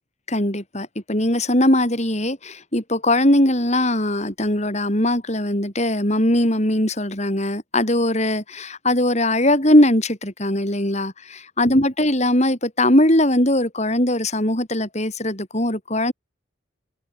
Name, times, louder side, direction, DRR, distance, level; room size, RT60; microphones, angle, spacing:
voice 1, 0.3-16.1, left 1 dB, 35° left, 6.7 m, -20 dB
open air
head